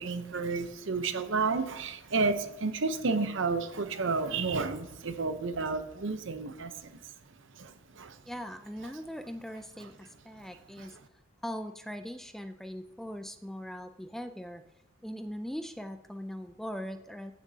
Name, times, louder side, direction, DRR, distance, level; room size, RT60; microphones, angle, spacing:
voice 1, 0.0-7.0 7.5-8.2 10.8-10.9, right 4 dB, 65° right, 9 dB, 0.8 m, -31 dB
voice 2, 8.2-11.0 11.4-14.6 15.0-17.3, equal, ahead, 8 dB, 0.4 m, -40 dB
15.0 x 7.1 x 2.8 m, 0.93 s
head